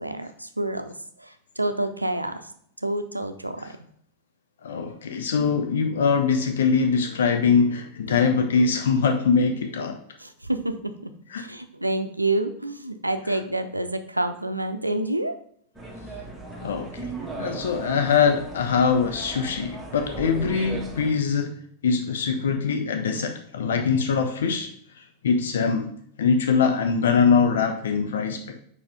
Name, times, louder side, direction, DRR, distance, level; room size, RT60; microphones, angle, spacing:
voice 1, 0.0-2.5 2.8-3.8 10.2-11.1 11.4-15.4, right 1 dB, 85° right, 9 dB, 0.5 m, -28 dB
voice 2, 4.6-10.0 11.3-11.4 16.6-17.1 17.4-21.5 21.8-24.7 25.2-25.9 26.2-28.6, left 5 dB, 65° left, 5 dB, 0.6 m, -22 dB
sound 1, 15.7-21.1, right 3 dB, 5° right, 1.6 m, -37 dB
5.0 x 4.8 x 4.8 m, 0.64 s
figure-of-eight pair, 90°, 0 cm